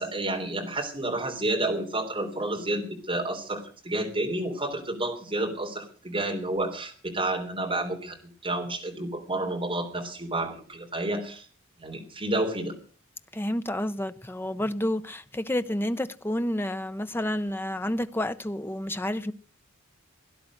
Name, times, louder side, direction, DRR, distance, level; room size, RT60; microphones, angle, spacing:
voice 1, 0.0-8.2 8.4-11.4 11.8-12.7, right 2 dB, 25° right, 3.5 m, -30 dB
voice 2, 13.3-19.3, left 1 dB, 10° left, 0.6 m, -30 dB
17.5 x 11.0 x 6.4 m
head